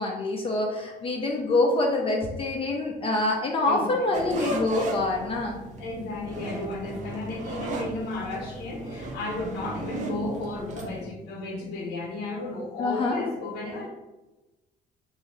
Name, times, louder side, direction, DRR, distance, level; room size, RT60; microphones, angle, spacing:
voice 1, 0.0-5.6 12.8-13.2, left 2 dB, 35° left, 0 dB, 0.4 m, -26 dB
voice 2, 3.6-4.4 5.8-13.9, left 2 dB, 75° left, -1 dB, 0.7 m, -34 dB
sound 1, 4.1-11.0, right 2 dB, 45° right, 0.5 m, -36 dB
2.7 x 2.7 x 3.1 m, 1.1 s
cardioid pair, 110°, 17 cm